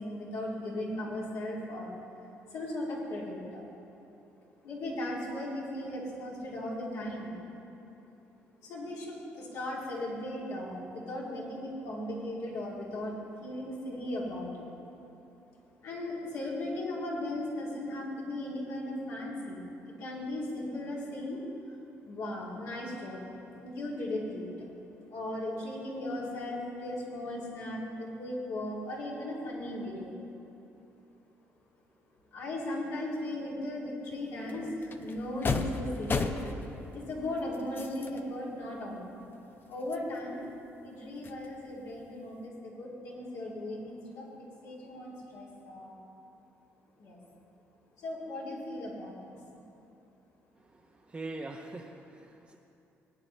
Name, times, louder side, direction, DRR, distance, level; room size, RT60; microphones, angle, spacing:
voice 1, 0.0-1.9 2.5-3.6 4.6-7.5 8.6-13.1 13.4-14.7 15.8-21.4 22.0-23.2 23.5-24.5 25.1-30.1 32.3-36.3 36.9-39.2 39.7-40.4 40.8-44.2 44.6-46.0 47.0-47.2 48.0-49.4, left 1 dB, 75° left, -5 dB, 2.9 m, -37 dB
sound 1, 34.1-34.2 34.5-38.3 38.7-38.8 39.3-40.9 41.2-42.4, left 4 dB, 40° left, 0.7 m, -36 dB
voice 2, 50.6-52.6, right 2 dB, 25° right, -1 dB, 0.8 m, -43 dB
18.5 x 9.0 x 3.3 m, 2.8 s
supercardioid pair, 70°, 6 cm